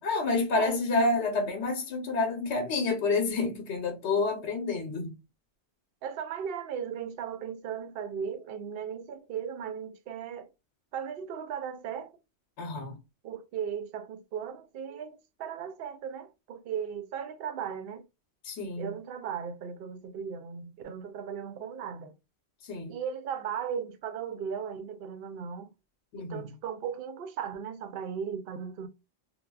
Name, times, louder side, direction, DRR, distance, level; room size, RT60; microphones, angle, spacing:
voice 1, 0.0-5.2 12.6-13.0 18.4-18.9 22.6-23.0 26.1-26.5, left 3 dB, 75° left, 1.0 m, -29 dB
voice 2, 6.0-10.5 10.9-12.1 13.2-18.0 18.8-22.1 22.9-25.7 26.2-28.9, right 7 dB, 65° right, 0.7 m, -37 dB
3.3 x 2.2 x 2.3 m
omnidirectional pair, 1.1 m